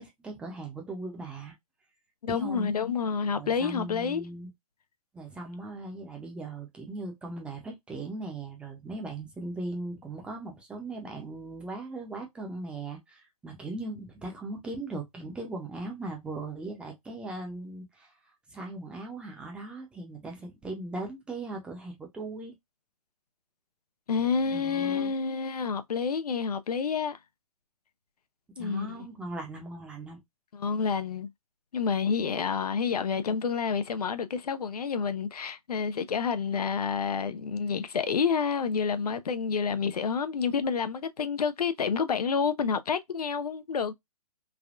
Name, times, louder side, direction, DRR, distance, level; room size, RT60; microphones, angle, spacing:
voice 1, 0.0-1.5 2.3-2.7 3.3-4.5 5.1-18.1 18.5-22.5 24.5-25.1 28.6-30.2, right 2 dB, 5° right, 0.6 m, -39 dB
voice 2, 2.2-4.2 24.1-27.2 28.6-29.1 30.5-31.3 31.7-43.9, left 6 dB, 85° left, 0.6 m, -29 dB
3.4 x 2.1 x 2.4 m
hypercardioid pair, 145°, 19 cm